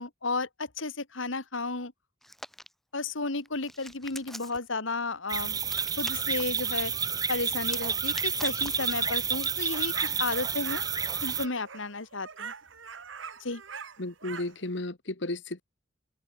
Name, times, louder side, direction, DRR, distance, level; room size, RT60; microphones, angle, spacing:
voice 1, 0.0-1.9 2.9-5.6 6.0-6.9 7.3-10.8 11.2-12.5 13.4-13.6, left 3 dB, 85° left, 2.3 m, -33 dB
Hands, 2.2-2.7 3.4-4.7 5.6-6.4 7.6-9.6, equal, ahead, 2.5 m, -44 dB
sound 1, 5.3-11.5, right 6 dB, 20° right, 1.9 m, -30 dB
sound 2, 9.7-14.6, right 6 dB, 80° right, 1.6 m, -43 dB
voice 2, 14.0-15.6, left 2 dB, 65° left, 1.8 m, -34 dB
head